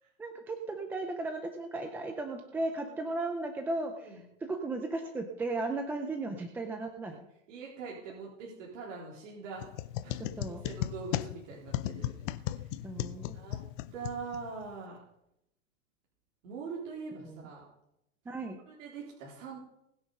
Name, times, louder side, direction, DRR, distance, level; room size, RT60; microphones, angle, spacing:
voice 1, 0.2-7.2 10.2-10.6 12.8-13.4 17.2-17.5 18.3-18.6, right 2 dB, 5° right, 5 dB, 0.4 m, -36 dB
voice 2, 2.5-3.0 4.0-4.2 7.1-7.2 7.5-9.7 10.0-10.2 10.6-12.7 13.3-13.6 13.9-15.0 16.4-17.6 18.4-19.6, right 5 dB, 65° right, -4 dB, 3.8 m, -43 dB
sound 1, 9.6-14.7, left 13 dB, 40° left, 0.6 m, -36 dB
20.0 x 7.2 x 5.4 m, 0.81 s
supercardioid pair, 150°, 40 cm